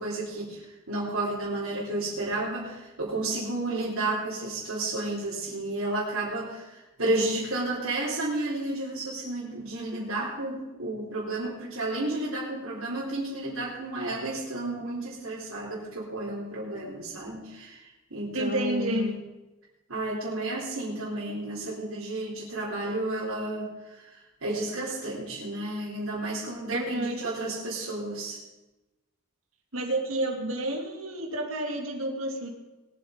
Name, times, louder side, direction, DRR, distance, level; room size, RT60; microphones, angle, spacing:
voice 1, 0.0-19.1 19.9-28.4, right 2 dB, 90° right, -8 dB, 4.2 m, -32 dB
voice 2, 18.3-19.1 26.7-27.2 29.7-32.5, right 1 dB, 75° right, 2 dB, 2.8 m, -30 dB
21.5 x 8.1 x 5.3 m, 1.1 s
head